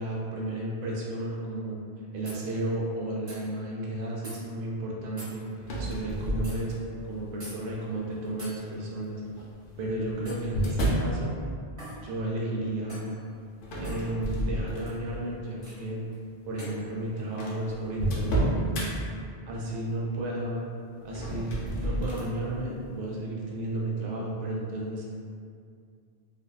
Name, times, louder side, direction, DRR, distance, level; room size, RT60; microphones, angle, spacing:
voice 1, 0.0-1.8 2.1-5.4 5.8-6.7 7.1-9.2 9.8-11.3 12.0-13.1 13.8-16.0 16.5-18.9 19.5-20.6 21.0-21.5 21.8-25.0, right 1 dB, 55° right, -4 dB, 0.5 m, -33 dB
sound 1, 2.2-2.4 3.3-3.4 4.2-4.4 5.2-5.4 6.4-6.6 7.4-7.6 8.4-8.6 10.2-10.5 11.8-12.0 12.9-13.1 13.8-14.0 15.6-15.8 16.6-16.8, right 1 dB, 30° right, 0.9 m, -43 dB
sound 2, 5.6-7.0 7.7-8.1 9.2-11.2 13.6-15.2 15.7-15.9 16.7-16.8 16.9-17.0 17.4-18.9 21.0-22.3, right 1 dB, 60° left, 0.6 m, -30 dB
2.5 x 2.2 x 2.2 m, 2.3 s
omnidirectional pair, 1.1 m